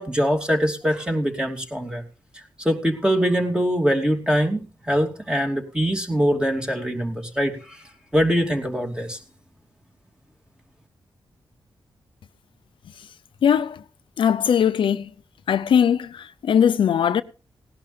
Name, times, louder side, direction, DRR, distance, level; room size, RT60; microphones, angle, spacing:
voice 1, 0.0-2.0 2.6-7.8 8.1-9.2, equal, 10° right, 2.8 m, -23 dB
voice 2, 13.4-13.8 14.2-15.1 15.5-17.2, left 8 dB, 80° left, 0.6 m, -20 dB
18.0 x 11.5 x 3.4 m
wide cardioid pair, 105°, 8 cm